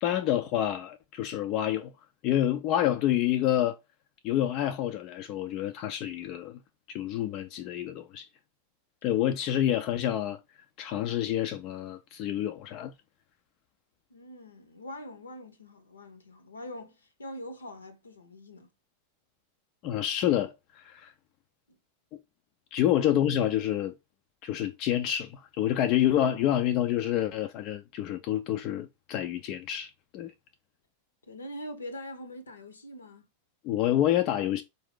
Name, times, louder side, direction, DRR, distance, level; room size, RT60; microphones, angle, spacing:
voice 1, 0.0-1.9 2.2-3.8 4.2-6.6 6.9-8.3 9.0-10.4 10.8-12.9 19.8-21.1 22.1-22.2 22.7-23.9 24.4-30.3 33.6-34.6, left 11 dB, 40° left, 0.4 m, -28 dB
voice 2, 14.1-18.7 21.7-21.8 31.2-33.3, left 1 dB, 75° left, 0.8 m, -43 dB
4.4 x 2.6 x 3.7 m
figure-of-eight pair, 90°, 0 cm